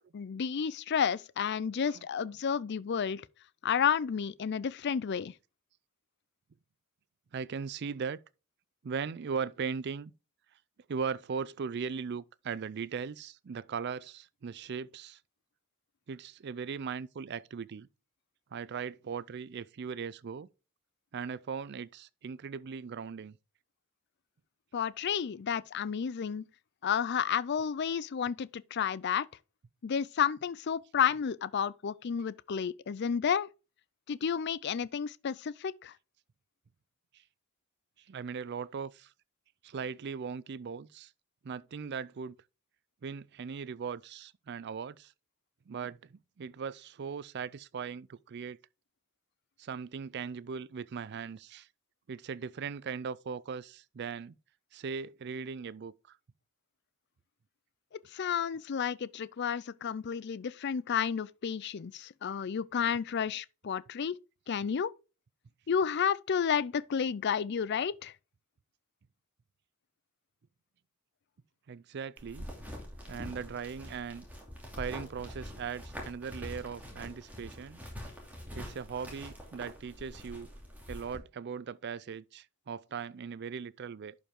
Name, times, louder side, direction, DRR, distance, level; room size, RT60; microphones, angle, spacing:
voice 1, 0.0-3.2 3.6-5.3 24.7-26.4 26.8-29.3 29.8-33.5 34.1-35.9 58.1-64.2 64.5-64.9 65.7-68.1, left 7 dB, 50° left, 0.4 m, -31 dB
voice 2, 7.3-8.2 8.8-10.1 10.9-15.2 16.1-17.9 18.5-20.5 21.1-23.4 38.1-39.1 39.6-41.1 41.4-42.4 43.0-45.1 45.7-48.6 49.6-51.7 52.1-54.4 54.7-56.2 71.7-72.5 73.1-74.2 74.8-77.8 78.5-80.5 80.9-84.2, right 6 dB, 50° right, 0.4 m, -39 dB
sound 1, 72.2-81.2, equal, 5° right, 2.7 m, -45 dB
11.0 x 5.2 x 3.6 m
head